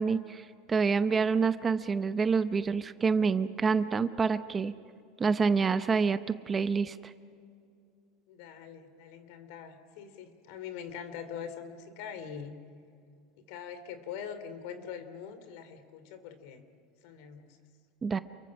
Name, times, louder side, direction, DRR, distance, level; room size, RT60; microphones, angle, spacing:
voice 1, 0.0-4.7 5.2-7.1 18.0-18.2, right 5 dB, 20° right, 11 dB, 0.7 m, -27 dB
voice 2, 8.3-12.6 13.4-16.7 17.0-17.6, left 7 dB, 65° left, 11 dB, 2.9 m, -43 dB
28.5 x 23.0 x 6.3 m, 2.3 s
supercardioid pair, 150°, 0 cm